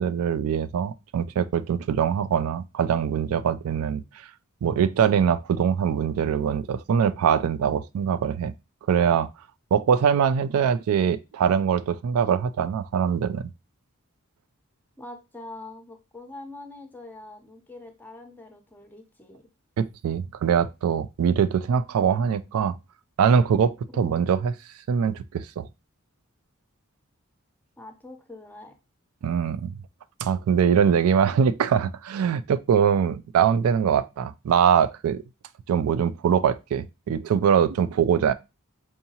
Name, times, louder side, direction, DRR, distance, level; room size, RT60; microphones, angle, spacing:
voice 1, 0.0-4.0 4.6-8.5 8.9-9.3 9.7-13.5 19.8-22.8 23.2-24.5 24.9-25.7 29.2-29.7 30.2-35.2 35.7-38.3, right 7 dB, 80° right, 0.3 m, -23 dB
voice 2, 15.0-19.5 23.9-24.3 27.8-28.8, left 2 dB, 10° left, 0.6 m, -44 dB
4.6 x 2.7 x 2.8 m
head